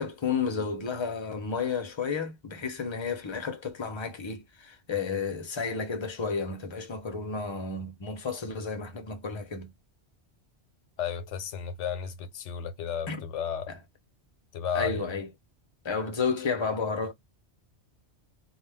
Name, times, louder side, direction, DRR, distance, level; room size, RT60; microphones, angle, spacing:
voice 1, 0.0-9.7 13.1-13.2 13.7-13.8 14.7-15.3 15.8-17.1, left 5 dB, 35° left, 0.5 m, -32 dB
voice 2, 11.0-13.7 14.5-15.1, left 7 dB, 85° left, 0.9 m, -33 dB
2.3 x 2.3 x 3.3 m
omnidirectional pair, 1.2 m